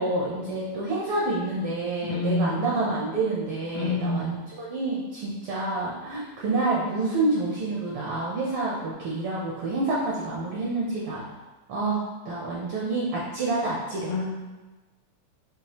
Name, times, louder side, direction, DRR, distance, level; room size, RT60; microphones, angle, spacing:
voice 1, 0.0-11.2 11.7-14.1, right 2 dB, 75° right, -5 dB, 1.2 m, -28 dB
voice 2, 2.0-2.7 3.7-4.3 14.0-14.5, left 2 dB, 75° left, 0 dB, 1.6 m, -28 dB
6.8 x 2.5 x 2.9 m, 1.2 s
omnidirectional pair, 3.3 m